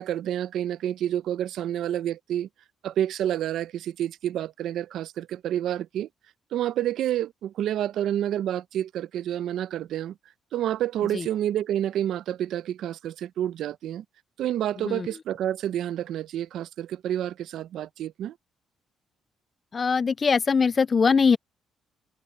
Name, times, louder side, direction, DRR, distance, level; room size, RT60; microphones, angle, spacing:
voice 1, 0.0-2.5 2.8-6.1 6.5-10.1 10.5-14.0 14.4-18.3, right 11 dB, 80° right, 0.7 m, -29 dB
voice 2, 19.7-21.4, left 5 dB, 35° left, 0.4 m, -21 dB
cardioid pair, 90°, 0 cm